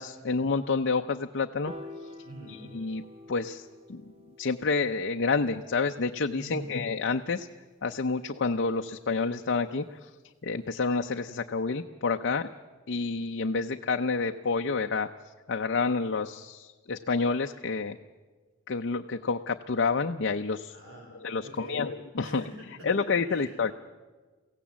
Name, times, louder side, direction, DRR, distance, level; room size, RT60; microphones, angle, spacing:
voice 1, 0.0-1.7 2.5-3.0 3.3-4.0 4.4-7.5 7.8-10.1 10.4-12.5 12.9-15.1 15.5-18.0 18.7-20.8 21.2-22.4 22.8-23.7, left 4 dB, 55° left, 4 dB, 0.6 m, -29 dB
Piano, 1.7-8.0, left 1 dB, 30° right, 1.9 m, -49 dB
voice 2, 2.2-2.6 6.3-6.8 20.7-21.8 22.2-22.9 23.3-23.6, right 1 dB, 70° right, 0 dB, 4.4 m, -44 dB
23.5 x 16.0 x 7.4 m, 1.4 s
head